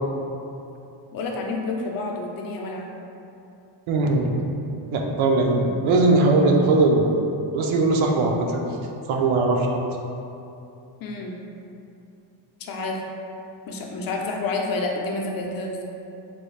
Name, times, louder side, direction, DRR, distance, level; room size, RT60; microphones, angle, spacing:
voice 1, 1.1-2.9 11.0-11.4 12.6-13.0 13.7-15.8, left 3 dB, 50° left, 1 dB, 0.5 m, -29 dB
voice 2, 3.9-4.3 4.9-7.1 7.5-8.6 9.1-9.8, right 2 dB, 85° right, 1 dB, 0.5 m, -20 dB
3.0 x 2.3 x 3.2 m, 2.8 s
cardioid pair, 125°, 47 cm